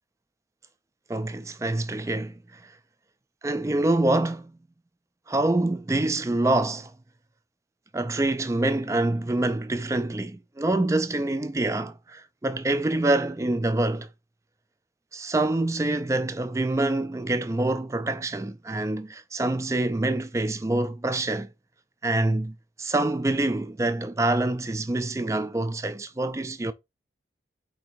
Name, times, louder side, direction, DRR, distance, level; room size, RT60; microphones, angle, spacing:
voice 1, 1.1-2.7 3.4-4.6 5.3-6.9 7.9-14.1 15.1-21.5 22.0-26.7, right 2 dB, 15° right, 0.3 m, -26 dB
4.6 x 2.6 x 4.4 m
head